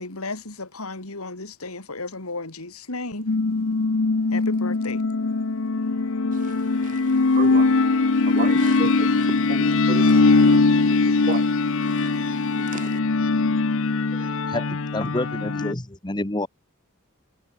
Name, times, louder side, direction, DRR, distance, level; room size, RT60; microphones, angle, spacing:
voice 1, 0.0-3.3 4.3-5.0, left 3 dB, 80° left, 3.5 m, -34 dB
sound 1, 3.3-15.7, left 3 dB, 60° left, 0.8 m, -21 dB
voice 2, 8.4-9.1 9.5-10.6 11.3-11.4 12.7-12.8, right 5 dB, 35° right, 0.4 m, -32 dB
voice 3, 14.1-16.5, left 1 dB, 20° left, 1.3 m, -29 dB
head